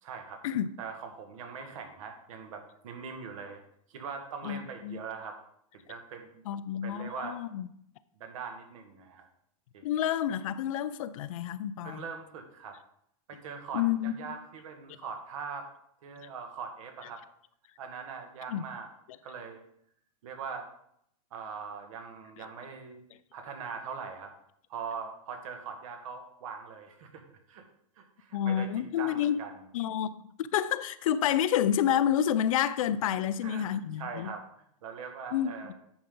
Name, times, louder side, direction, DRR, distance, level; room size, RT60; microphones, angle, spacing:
voice 1, 0.0-0.4 0.8-3.6 3.9-5.4 5.7-6.4 6.8-7.4 8.2-9.2 9.7-9.9 11.8-12.8 13.3-13.8 14.2-15.7 16.0-17.2 17.8-18.9 19.2-19.6 20.2-20.7 21.3-23.0 23.3-24.3 24.7-27.6 28.0-29.5 33.1-35.7, right 6 dB, 65° right, 1.9 m, -41 dB
voice 2, 4.4-5.0 6.5-7.7 9.8-12.0 13.7-14.3 18.5-18.6 22.4-22.5 28.3-29.4 29.7-34.3 35.3-35.7, left 10 dB, 70° left, 0.6 m, -29 dB
9.8 x 5.3 x 3.8 m
hypercardioid pair, 135°, 18 cm